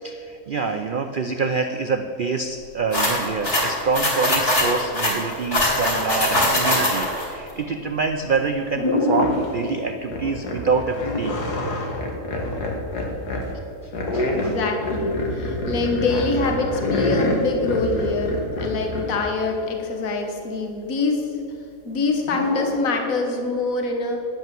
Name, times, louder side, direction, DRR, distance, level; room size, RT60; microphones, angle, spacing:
voice 1, 0.0-11.3 14.1-14.6, right 4 dB, 80° right, 7 dB, 0.4 m, -26 dB
sound 1, 2.9-7.3, left 1 dB, 45° left, 3.1 m, -21 dB
sound 2, 8.2-8.4 8.7-9.6 10.1-13.5 13.9-19.1 22.2-22.8, left 1 dB, 85° left, 2.1 m, -26 dB
voice 2, 14.4-21.3 21.8-24.3, left 3 dB, 60° left, 2 dB, 1.7 m, -25 dB
10.5 x 8.1 x 7.5 m, 2.8 s
omnidirectional pair, 1.6 m